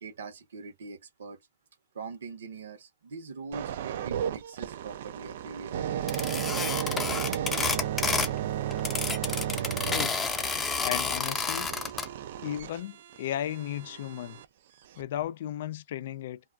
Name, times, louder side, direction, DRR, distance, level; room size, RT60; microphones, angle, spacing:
voice 1, 0.0-1.4 1.9-6.1, right 4 dB, 85° right, 0.8 m, -42 dB
sound 1, 3.5-14.5 15.0-15.2, right 10 dB, 70° right, 0.3 m, -34 dB
sound 2, 6.1-8.4 8.7-12.1, left 5 dB, 15° left, 0.6 m, -30 dB
voice 2, 9.9-10.2 10.8-11.7 12.4-14.4 15.0-16.4, left 11 dB, 65° left, 0.3 m, -35 dB
2.3 x 2.3 x 2.3 m
hypercardioid pair, 120°, 0 cm